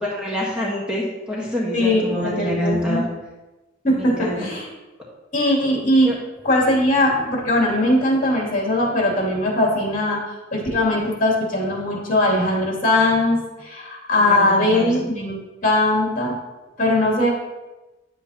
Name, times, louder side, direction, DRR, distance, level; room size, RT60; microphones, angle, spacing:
voice 1, 0.0-3.0 3.9-4.5 6.0-6.2 14.1-15.0, equal, 5° right, -5 dB, 1.4 m, -26 dB
voice 2, 1.7-3.0 3.8-4.7 5.3-6.1 6.4-16.4 16.8-17.3, left 1 dB, 45° left, -3 dB, 2.7 m, -20 dB
9.7 x 8.2 x 2.9 m, 1.1 s
head